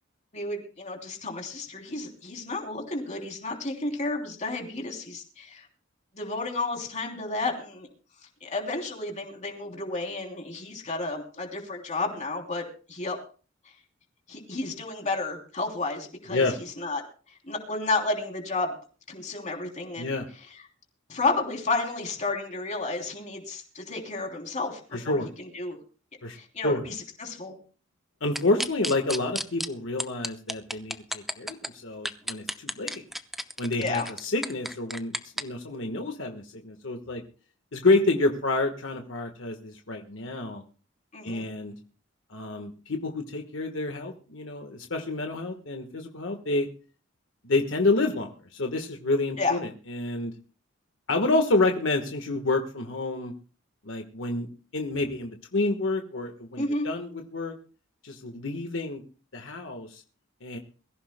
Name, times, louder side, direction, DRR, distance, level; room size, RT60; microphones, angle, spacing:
voice 1, 0.3-5.7 6.1-7.9 8.4-13.2 14.3-17.0 17.3-18.7 19.1-20.1 21.1-25.8 26.3-27.6 33.8-34.1 41.1-41.4 49.4-49.6 56.6-56.9, left 3 dB, 35° left, 2 dB, 3.2 m, -32 dB
voice 2, 24.9-25.3 26.2-26.4 26.6-26.8 28.2-33.0 33.6-37.2 37.7-40.6 41.2-41.7 42.3-46.7 47.4-50.3 51.1-53.3 53.8-54.5 54.7-57.5 58.0-59.0 59.3-60.0 60.4-60.6, left 2 dB, 70° left, 4 dB, 1.4 m, -28 dB
sound 1, 28.4-29.7 30.0-31.7 32.1-35.4, equal, ahead, 0.7 m, -31 dB
23.0 x 15.0 x 2.2 m, 0.37 s
head